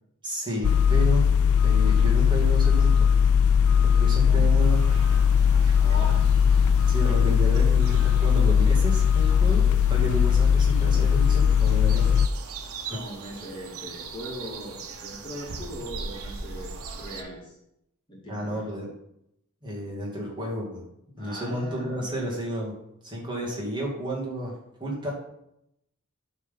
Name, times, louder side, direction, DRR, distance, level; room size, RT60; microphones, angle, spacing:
voice 1, 0.2-1.3 1.6-3.1 3.8-4.8 6.9-12.2 12.9-13.0 18.3-18.9 19.6-20.8 21.2-22.7 23.0-24.5 24.8-25.1, equal, 20° right, -4 dB, 2.4 m, -31 dB
sound 1, 0.6-12.3, left 7 dB, 85° left, 0.4 m, -19 dB
sound 2, 4.6-17.2, right 4 dB, 80° right, 1.1 m, -40 dB
voice 2, 5.8-6.3 7.2-7.7 12.9-16.7 17.0-17.6 18.1-18.7 21.2-22.1, equal, 20° left, -4 dB, 2.2 m, -39 dB
11.5 x 3.9 x 5.5 m, 0.79 s
head